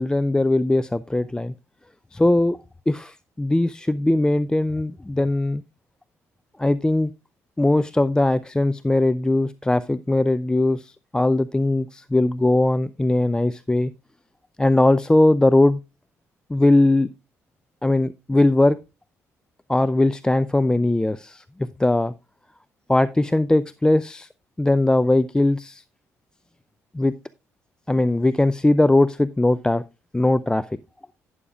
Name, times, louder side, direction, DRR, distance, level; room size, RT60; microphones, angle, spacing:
voice 1, 0.0-1.5 2.1-2.6 2.9-5.6 6.6-7.1 7.6-13.9 14.6-15.8 16.5-17.1 17.8-18.8 19.7-22.1 22.9-24.3 24.6-25.8 26.9-27.1 27.9-29.8 30.1-30.7, left 2 dB, 10° left, 16 dB, 0.4 m, -20 dB
11.5 x 9.8 x 2.4 m, 0.26 s
hypercardioid pair, 50°, 7 cm